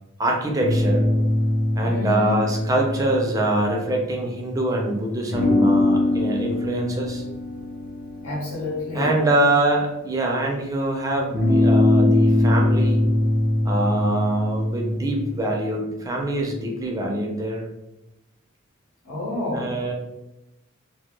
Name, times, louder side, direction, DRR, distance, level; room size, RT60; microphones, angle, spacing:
voice 1, 0.2-1.1 1.7-7.2 8.9-13.0 13.6-17.7 19.5-19.9, right 1 dB, 15° right, -1 dB, 0.4 m, -24 dB
sound 1, 0.6-4.5 5.3-10.4 11.3-15.5, left 1 dB, 40° left, 0.6 m, -22 dB
voice 2, 1.8-2.4 8.2-9.2 19.0-19.8, left 2 dB, 85° left, -4 dB, 1.1 m, -28 dB
2.1 x 2.1 x 3.0 m, 0.95 s
head